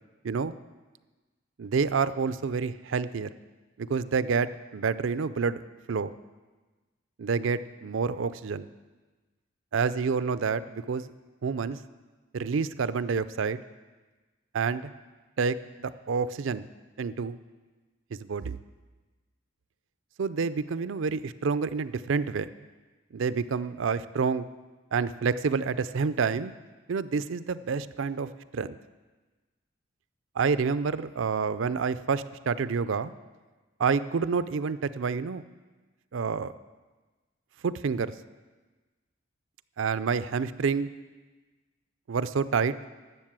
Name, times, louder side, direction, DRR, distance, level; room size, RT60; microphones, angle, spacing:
voice 1, 1.6-3.3 3.8-5.6 5.9-6.1 7.2-8.7 9.7-11.1 11.4-11.8 12.3-13.6 14.5-14.9 15.4-15.6 15.8-16.7 17.0-17.4 18.1-18.6 20.2-22.5 23.1-24.5 24.9-26.5 26.9-28.8 30.4-33.1 33.8-35.4 36.1-36.5 37.6-38.1 39.8-40.9 42.1-42.7, right 5 dB, 75° right, 14 dB, 0.4 m, -28 dB
12.5 x 7.3 x 7.4 m, 1.3 s
head